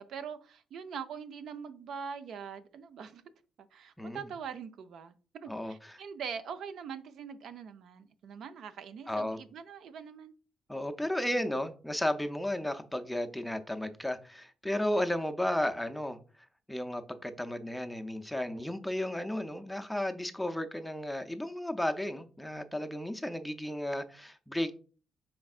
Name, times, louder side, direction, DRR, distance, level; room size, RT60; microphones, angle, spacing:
voice 1, 0.0-3.2 3.7-10.3 11.3-11.4, right 6 dB, 70° right, 0.4 m, -43 dB
voice 2, 5.5-6.0 9.1-9.4 10.7-16.2 16.7-24.8, left 1 dB, 5° left, 0.5 m, -34 dB
5.2 x 4.3 x 2.4 m
cardioid pair, 90°, 0 cm